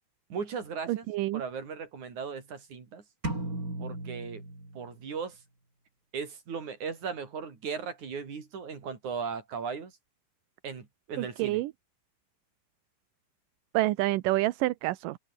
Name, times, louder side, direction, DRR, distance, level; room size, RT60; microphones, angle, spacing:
voice 1, 0.3-1.1 1.3-3.0 3.8-4.4 4.8-5.4 6.1-9.9 10.6-11.6, right 6 dB, 60° right, 5.4 m, -37 dB
voice 2, 0.9-1.4 11.2-11.7 13.7-15.2, right 17 dB, 80° right, 2.5 m, -28 dB
sound 1, 3.2-5.1, right 2 dB, 25° right, 7.6 m, -36 dB
open air
omnidirectional pair, 3.8 m